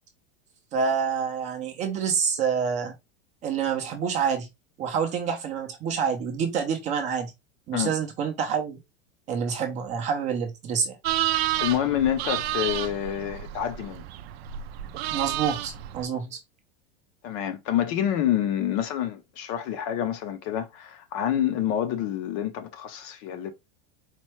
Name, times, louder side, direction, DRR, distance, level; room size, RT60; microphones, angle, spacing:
voice 1, 0.7-2.9 3.4-4.5 4.8-7.3 7.7-8.8 9.3-11.0 15.1-16.4, right 6 dB, 20° right, 0.5 m, -27 dB
sound 1, 11.0-16.1, right 13 dB, 70° right, 0.5 m, -30 dB
voice 2, 11.6-14.0 17.2-23.5, left 10 dB, 35° left, 0.5 m, -27 dB
4.3 x 2.2 x 3.0 m
supercardioid pair, 165°, 33 cm